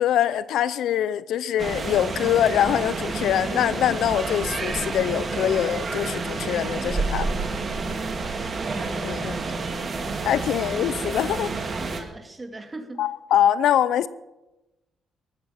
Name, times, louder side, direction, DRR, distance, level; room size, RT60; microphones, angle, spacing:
voice 1, 0.0-7.3 9.0-9.4 10.2-11.5 13.0-14.1, left 10 dB, 80° left, 0.6 m, -23 dB
sound 1, 1.6-12.0, right 3 dB, 40° right, 2.2 m, -29 dB
voice 2, 12.0-13.1, right 2 dB, 25° right, 2.2 m, -42 dB
15.5 x 12.5 x 5.8 m
cardioid pair, 90°, 0 cm